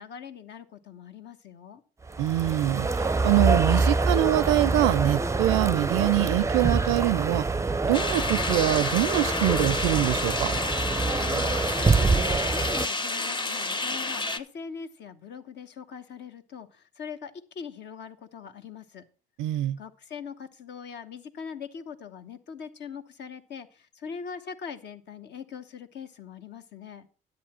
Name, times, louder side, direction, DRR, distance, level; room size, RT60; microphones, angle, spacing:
voice 1, 0.0-1.8 11.1-19.0 19.8-27.1, left 6 dB, 60° left, 1.0 m, -41 dB
sound 1, 2.1-12.9, right 3 dB, 15° right, 0.5 m, -26 dB
voice 2, 2.2-7.5 7.9-10.5 19.4-19.8, right 15 dB, 75° right, 0.4 m, -24 dB
sound 2, 7.9-14.4, left 3 dB, 25° left, 0.9 m, -30 dB
10.5 x 7.9 x 4.3 m
hypercardioid pair, 55°, 20 cm